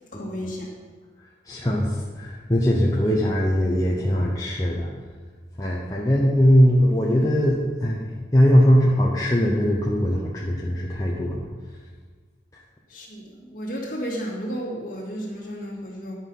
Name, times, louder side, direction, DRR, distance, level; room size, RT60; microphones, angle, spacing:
voice 1, 0.1-0.7 12.9-16.1, equal, 50° left, -4 dB, 2.3 m, -33 dB
voice 2, 1.5-4.9 5.6-11.5, equal, 20° left, -4 dB, 0.9 m, -20 dB
11.0 x 5.6 x 5.6 m, 1.4 s
head